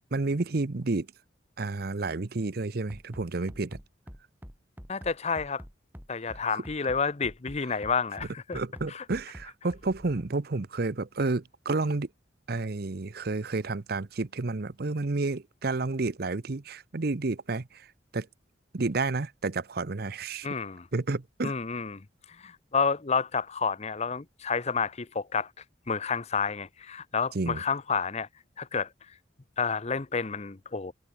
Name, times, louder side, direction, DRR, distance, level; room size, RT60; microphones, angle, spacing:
voice 1, 0.1-1.1 1.6-3.8 6.5-6.6 8.5-12.1 12.5-17.9 18.1-18.3 18.7-20.5 20.9-21.5 27.3-27.6, right 3 dB, 60° right, 0.8 m, -30 dB
Bass drum, 2.9-10.3, equal, 10° right, 2.7 m, -46 dB
voice 2, 4.9-5.6 6.1-8.6 8.9-9.0 20.4-20.9 21.4-22.0 22.4-25.5 25.9-28.3 28.6-28.9 29.6-30.9, left 5 dB, 35° left, 0.8 m, -30 dB
head